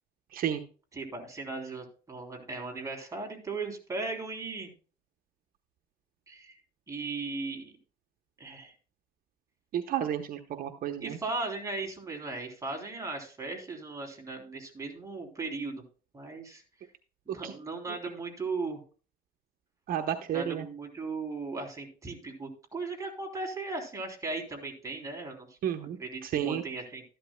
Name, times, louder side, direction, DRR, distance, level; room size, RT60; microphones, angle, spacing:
voice 1, 0.9-4.7 6.3-6.5 6.9-7.7 8.4-8.7 11.0-15.8 16.1-16.6 17.3-18.8 20.3-25.5 25.8-27.0, right 3 dB, 20° right, 2 dB, 3.2 m, -37 dB
voice 2, 9.7-11.2 17.4-17.5 19.9-20.7 25.6-26.0 26.2-26.6, right 10 dB, 60° right, 6 dB, 0.9 m, -31 dB
13.0 x 11.5 x 2.2 m, 0.37 s
cardioid pair, 110°, 17 cm